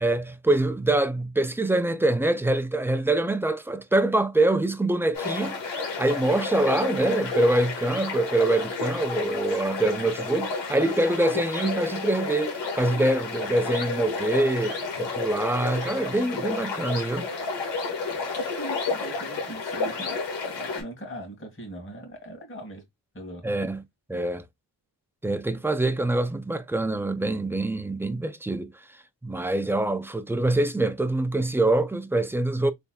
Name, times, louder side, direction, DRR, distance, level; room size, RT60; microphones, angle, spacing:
voice 1, 0.0-17.3 23.4-23.8 24.1-24.4 25.2-28.7 29.2-32.7, right 2 dB, 5° right, 0.4 m, -25 dB
sound 1, 5.1-20.8, left 4 dB, 85° left, 1.6 m, -31 dB
voice 2, 18.1-22.8 23.1-23.4, right 1 dB, 30° left, 2.0 m, -40 dB
3.8 x 3.5 x 2.3 m
cardioid pair, 70°, 42 cm